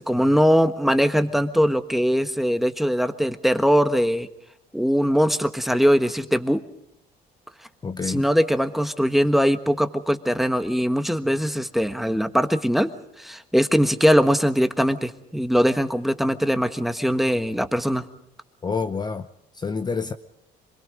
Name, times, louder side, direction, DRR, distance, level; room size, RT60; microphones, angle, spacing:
voice 1, 0.0-4.3 4.7-6.6 8.0-12.9 13.2-18.0, equal, ahead, 1.3 m, -21 dB
voice 2, 7.8-8.2 18.6-19.2 19.5-20.1, left 5 dB, 25° left, 0.8 m, -27 dB
27.0 x 21.5 x 5.2 m
cardioid pair, 110°, 17 cm